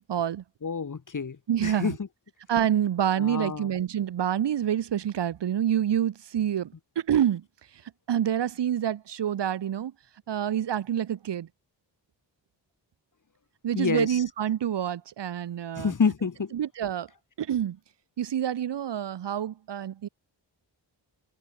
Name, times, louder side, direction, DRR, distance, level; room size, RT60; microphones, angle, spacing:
voice 1, 0.0-0.4 1.5-2.0 2.5-7.4 8.1-9.9 10.3-11.5 13.6-15.9 16.5-17.1 17.4-17.8 18.2-20.1, right 10 dB, 65° right, 0.7 m, -27 dB
voice 2, 0.6-2.1 3.1-3.7 13.7-14.2 15.8-16.5, left 5 dB, 40° left, 1.2 m, -28 dB
cardioid pair, 50°, 45 cm